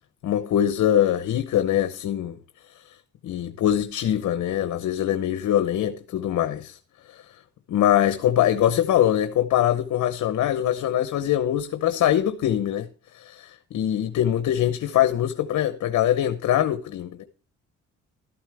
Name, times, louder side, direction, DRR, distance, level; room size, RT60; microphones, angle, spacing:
voice 1, 0.2-2.4 2.8-2.9 3.2-6.8 7.1-7.2 7.7-12.9 13.1-17.2, left 11 dB, 70° left, 0.9 m, -23 dB
12.5 x 11.0 x 3.4 m
cardioid pair, 90°, 30 cm